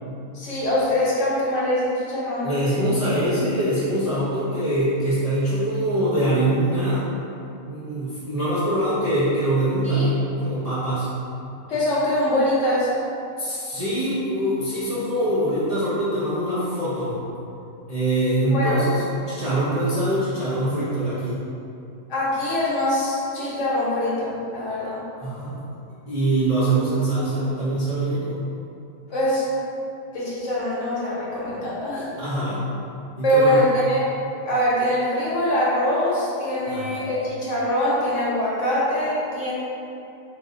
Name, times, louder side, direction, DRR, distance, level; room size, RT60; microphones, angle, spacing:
voice 1, 0.3-2.5 9.8-10.0 11.7-12.9 18.4-18.8 22.1-25.0 29.1-29.4 30.1-32.1 33.2-34.0 34.5-39.5, left 1 dB, 55° left, -8 dB, 1.2 m, -23 dB
voice 2, 2.4-7.0 7.7-11.1 13.4-17.1 17.9-21.4 25.2-25.6 26.1-28.4 32.2-32.6 33.2-33.6 36.6-36.9, right 1 dB, 40° right, -12 dB, 0.5 m, -23 dB
3.5 x 2.6 x 3.7 m, 2.7 s
omnidirectional pair, 1.6 m